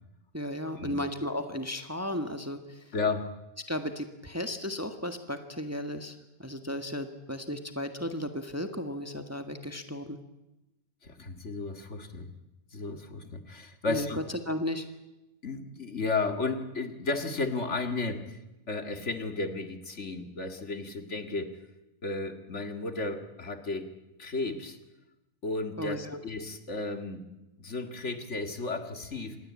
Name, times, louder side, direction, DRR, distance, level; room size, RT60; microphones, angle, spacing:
voice 1, 0.3-2.9 3.7-10.2 13.9-14.1 14.4-14.8 25.8-26.2, equal, 10° right, 7 dB, 1.7 m, -35 dB
voice 2, 2.9-3.3 11.0-12.3 12.7-14.2 15.4-18.4 18.7-21.6 22.0-23.9 24.2-24.8 25.4-27.2 27.6-29.4, left 3 dB, 50° left, 8 dB, 2.2 m, -33 dB
27.0 x 19.5 x 8.6 m, 0.95 s
omnidirectional pair, 1.5 m